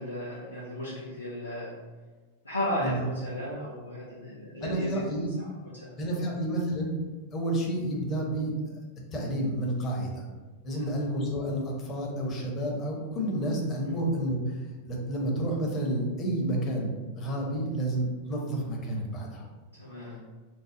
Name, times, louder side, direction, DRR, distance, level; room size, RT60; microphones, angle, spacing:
voice 1, 0.0-1.7 2.4-5.1 5.4-6.2 10.8-10.9 19.7-20.2, left 1 dB, 80° left, -7 dB, 0.6 m, -35 dB
voice 2, 4.6-5.3 6.0-6.9 7.3-8.5 9.1-10.2 10.6-14.6 14.8-19.4, right 1 dB, 30° left, -1 dB, 0.9 m, -30 dB
3.2 x 2.1 x 3.8 m, 1.3 s
figure-of-eight pair, 90°, 0 cm